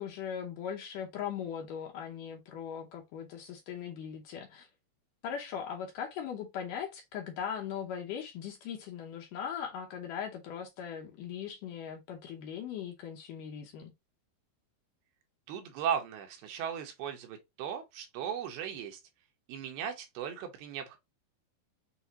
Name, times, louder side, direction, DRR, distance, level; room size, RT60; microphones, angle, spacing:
voice 1, 0.0-4.7 5.2-13.9, left 8 dB, 75° left, 2.1 m, -39 dB
voice 2, 15.5-19.0 19.5-21.0, right 8 dB, 90° right, 3.0 m, -37 dB
6.9 x 2.5 x 2.9 m
omnidirectional pair, 4.5 m